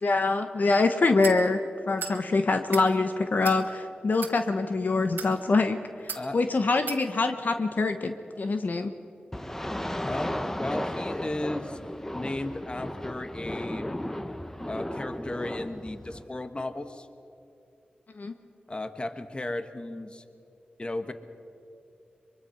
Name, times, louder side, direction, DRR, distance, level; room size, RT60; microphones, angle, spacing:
voice 1, 0.0-5.8 6.0-8.9 18.1-18.3, left 3 dB, 60° left, 7 dB, 1.1 m, -25 dB
sound 1, 1.2-1.4 2.0-2.2 2.6-2.9 3.4-3.6 4.1-4.3 5.0-5.3 6.1-6.2 6.9-7.0, right 5 dB, 80° right, 1.7 m, -36 dB
sound 2, 9.3-16.3, left 1 dB, 15° left, 1.0 m, -34 dB
voice 2, 10.1-11.8 12.1-13.9 14.7-17.1 18.7-20.2 20.8-21.1, left 2 dB, 30° left, 9 dB, 1.3 m, -35 dB
23.5 x 23.0 x 5.8 m, 2.7 s
cardioid pair, 55°, 3 cm